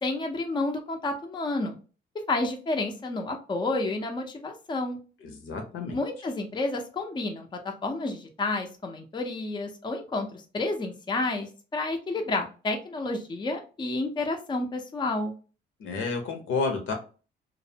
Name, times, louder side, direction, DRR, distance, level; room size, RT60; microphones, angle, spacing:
voice 1, 0.0-1.8 2.3-5.0 5.9-15.3, left 2 dB, 25° left, 4 dB, 0.5 m, -30 dB
voice 2, 5.2-6.0 15.8-16.9, left 4 dB, 80° left, 4 dB, 0.7 m, -30 dB
2.5 x 2.0 x 2.7 m, 0.35 s
cardioid pair, 90°, 20 cm